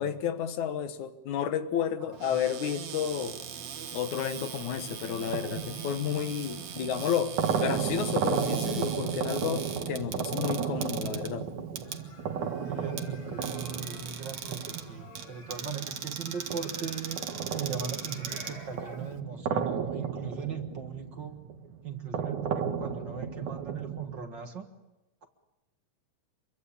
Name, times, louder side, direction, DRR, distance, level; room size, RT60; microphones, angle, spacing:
voice 1, 0.0-3.4 3.9-7.4 7.6-11.5, left 8 dB, 80° left, 10 dB, 2.8 m, -31 dB
voice 2, 2.0-2.4 12.6-17.2 17.5-21.4 21.8-24.7 25.2-25.3, right 6 dB, 45° right, 6 dB, 1.9 m, -39 dB
Cupboard open or close, 2.1-19.2, right 8 dB, 70° right, 2.7 m, -41 dB
sound 1, 4.3-16.0 16.5-24.2, right 7 dB, 85° right, 3.4 m, -34 dB
sound 2, 11.8-19.0, left 2 dB, 60° left, 7.3 m, -51 dB
26.5 x 23.5 x 8.7 m, 0.97 s
omnidirectional pair, 3.3 m